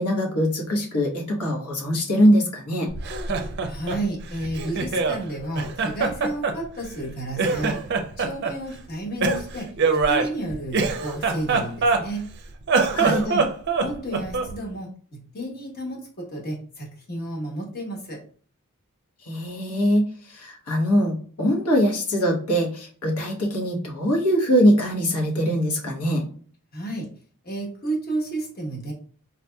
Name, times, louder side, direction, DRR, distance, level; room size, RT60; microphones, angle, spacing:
voice 1, 0.0-2.9 12.9-13.3 19.3-20.1 20.3-26.3, equal, 85° left, 0 dB, 1.1 m, -22 dB
Laughter, 2.9-5.2 5.6-7.1 7.4-8.6 9.2-12.3 12.6-14.6, right 4 dB, 50° right, 0.5 m, -24 dB
voice 2, 3.7-7.8 8.2-9.7 10.1-12.3 13.0-13.4 13.8-18.2 26.7-27.1 27.4-28.9, right 1 dB, 45° left, 0 dB, 1.0 m, -32 dB
4.0 x 2.8 x 2.2 m, 0.44 s
head